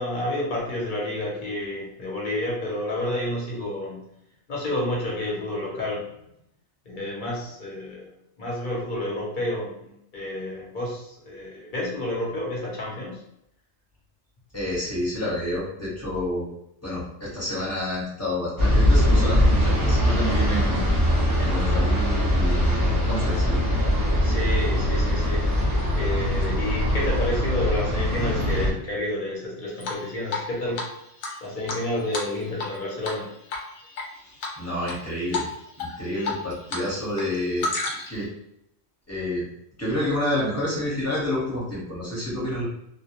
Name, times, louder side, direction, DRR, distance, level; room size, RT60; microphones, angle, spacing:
voice 1, 0.0-4.0 4.5-6.1 6.9-8.1 8.4-13.2 24.2-30.9 31.4-33.3, left 1 dB, 45° left, -3 dB, 0.8 m, -30 dB
voice 2, 14.5-16.5 16.8-20.9 21.4-23.6 34.6-35.5 35.8-37.7 38.1-38.3 39.1-39.5 39.8-42.6, left 1 dB, 15° left, -7 dB, 0.8 m, -29 dB
sound 1, 18.6-28.7, equal, 30° right, 0.4 m, -21 dB
Drip, 29.8-30.5 30.8-30.9 31.2-32.8 33.0-33.2 33.5-34.0 34.4-35.0 35.3-35.5 35.8-36.8 37.1-38.2, left 3 dB, 85° left, 1.0 m, -30 dB
2.2 x 2.1 x 2.8 m, 0.77 s
omnidirectional pair, 1.4 m